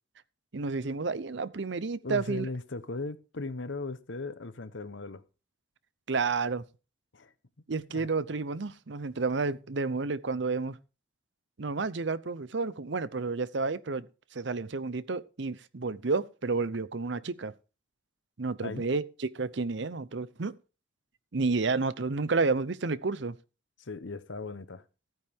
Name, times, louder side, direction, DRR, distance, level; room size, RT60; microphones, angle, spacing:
voice 1, 0.5-2.5 6.1-6.6 7.7-10.8 11.6-14.1 14.3-17.5 18.4-20.5 21.3-23.4, right 4 dB, 65° right, 0.7 m, -30 dB
voice 2, 2.0-5.2 7.1-7.3 7.9-8.1 18.6-18.8 23.8-24.8, left 3 dB, 70° left, 1.0 m, -38 dB
15.0 x 9.2 x 3.6 m
head